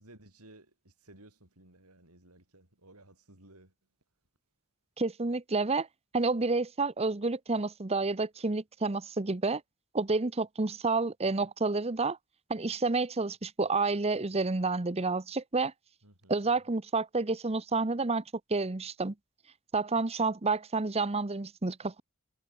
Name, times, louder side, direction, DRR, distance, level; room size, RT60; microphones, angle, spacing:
voice 1, 0.0-3.7 16.0-16.5, right 1 dB, 85° right, 7.0 m, -57 dB
voice 2, 5.0-5.9 6.1-9.6 9.9-12.2 12.5-15.7 16.3-18.2 18.5-19.1 19.7-22.0, right 3 dB, 25° right, 0.8 m, -29 dB
head